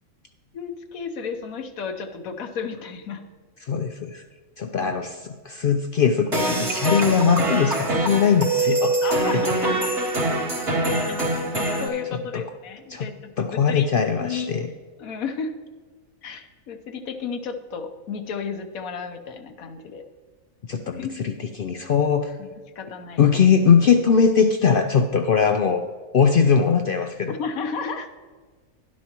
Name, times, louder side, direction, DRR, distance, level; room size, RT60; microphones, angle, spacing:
voice 1, 0.5-3.2 9.0-10.0 11.2-11.3 11.8-13.9 14.2-14.5 15.0-15.5 16.2-20.0 20.9-21.1 22.4-23.2 27.3-28.1, left 6 dB, 80° left, 6 dB, 1.3 m, -32 dB
voice 2, 3.6-4.2 4.6-9.0 12.3-12.4 12.9-13.1 13.4-14.7 20.6-22.3 23.2-25.8 26.1-27.3, left 6 dB, 65° left, 7 dB, 0.5 m, -20 dB
sound 1, 6.3-11.9, right 2 dB, 50° right, 1.9 m, -24 dB
12.5 x 11.5 x 3.0 m, 1.5 s
omnidirectional pair, 1.4 m